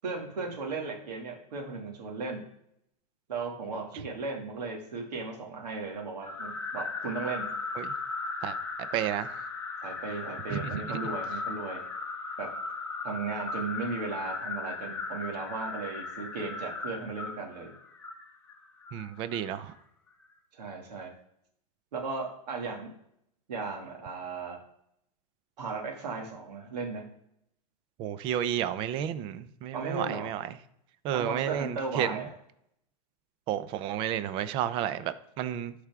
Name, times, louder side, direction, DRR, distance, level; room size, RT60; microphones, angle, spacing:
voice 1, 0.0-2.4 3.3-7.5 9.8-11.8 12.4-12.5 13.0-17.7 20.6-21.1 21.9-22.9 23.5-24.6 25.6-27.0 29.7-30.3 31.1-32.3, right 4 dB, 90° right, 2.3 m, -36 dB
sound 1, 6.2-19.6, left 4 dB, 10° left, 1.1 m, -37 dB
voice 2, 8.9-9.4 10.5-11.1 18.9-19.7 28.0-30.6 31.0-32.2 33.5-35.7, right 10 dB, 25° right, 0.5 m, -32 dB
12.0 x 4.9 x 3.6 m
supercardioid pair, 160°, 20 cm